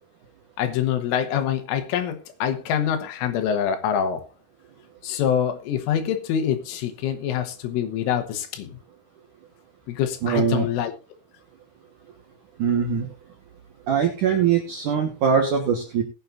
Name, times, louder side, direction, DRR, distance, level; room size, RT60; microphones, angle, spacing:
voice 1, 0.6-4.3 5.0-8.7 9.9-10.9, left 9 dB, 80° left, 3.7 m, -25 dB
voice 2, 10.2-10.7 12.6-13.1 13.9-16.0, right 7 dB, 70° right, 1.9 m, -22 dB
20.0 x 8.8 x 2.6 m
omnidirectional pair, 5.9 m